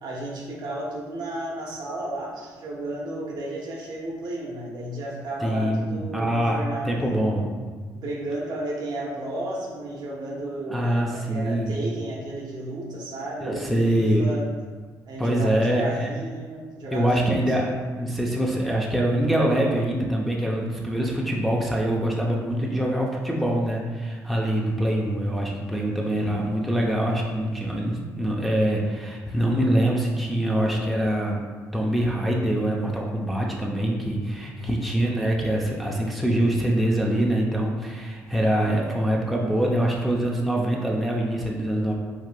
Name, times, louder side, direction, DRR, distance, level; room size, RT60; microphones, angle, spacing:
voice 1, 0.0-6.9 7.9-14.4 15.1-17.6 34.5-34.7, right 1 dB, 60° right, -3 dB, 0.9 m, -33 dB
voice 2, 5.4-7.5 10.7-11.8 13.4-14.3 15.2-16.1 16.9-31.4 31.7-41.9, right 1 dB, ahead, -2 dB, 0.6 m, -24 dB
4.6 x 2.4 x 2.2 m, 1.4 s
supercardioid pair, 60°, 8 cm